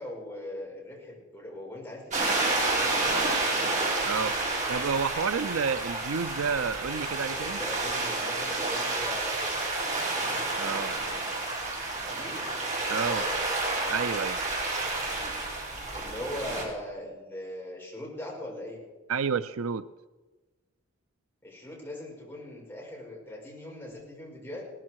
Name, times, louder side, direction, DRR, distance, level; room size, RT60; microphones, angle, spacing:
voice 1, 0.0-3.3 7.3-9.7 11.9-12.6 12.8-13.5 14.9-15.3 15.9-18.8 21.4-24.6, left 1 dB, 10° left, -5 dB, 6.1 m, -40 dB
sound 1, 2.1-16.6, right 2 dB, 35° right, 4.4 m, -30 dB
voice 2, 4.0-4.4 4.7-7.6 10.6-10.9 12.9-13.2 13.9-14.4 19.1-19.8, right 6 dB, 70° right, 14 dB, 0.5 m, -30 dB
18.5 x 13.5 x 4.7 m, 1.2 s
head